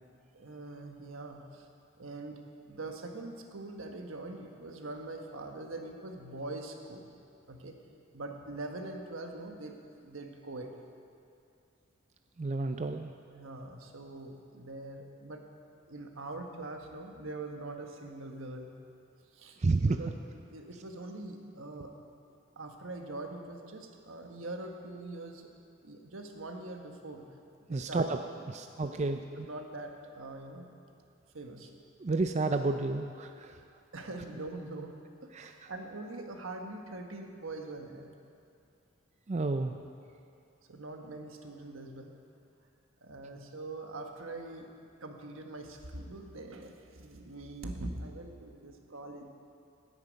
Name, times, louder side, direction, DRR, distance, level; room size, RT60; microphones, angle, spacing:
voice 1, 0.3-1.7 2.0-2.4 2.7-7.1 7.4-7.8 8.1-10.8 12.7-12.8 13.3-15.5 15.9-18.7 19.3-20.1 20.5-21.9 22.6-25.5 25.8-27.3 27.7-28.1 28.9-30.7 31.3-31.7 33.9-38.1 40.7-42.2 43.0-44.7 45.0-49.3, right 2 dB, 80° right, 3 dB, 1.3 m, -43 dB
voice 2, 12.4-13.1 19.6-20.0 27.7-28.2 28.5-29.2 32.0-33.6 35.4-35.5 39.3-39.8, right 3 dB, 35° right, 6 dB, 0.4 m, -30 dB
17.5 x 9.6 x 5.2 m, 2.5 s
head